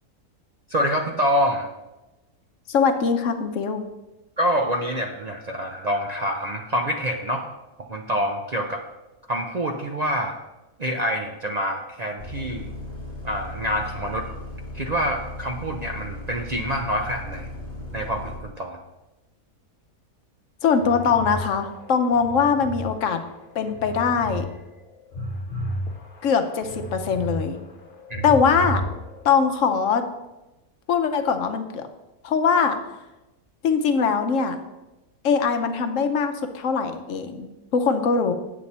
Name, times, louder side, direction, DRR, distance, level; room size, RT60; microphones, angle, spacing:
voice 1, 0.7-1.7 4.4-7.4 7.9-8.8 9.3-10.3 10.8-12.7 13.2-14.3 14.7-17.5 17.9-18.8 28.1-28.4, equal, 60° right, 2 dB, 0.4 m, -26 dB
voice 2, 2.7-3.8 20.6-23.2 23.5-24.5 26.2-27.6 28.2-28.8 29.2-30.1 30.9-31.8 32.2-32.8 33.6-34.6 35.2-38.3, left 6 dB, 60° left, 7 dB, 1.1 m, -22 dB
Bus, 12.2-18.4, left 1 dB, 10° left, 1.9 m, -37 dB
sound 1, 20.8-22.9 23.3-24.4 24.8-27.4 27.7-29.2, right 1 dB, 40° left, 1.1 m, -33 dB
8.3 x 7.5 x 4.2 m, 1.0 s
omnidirectional pair, 1.5 m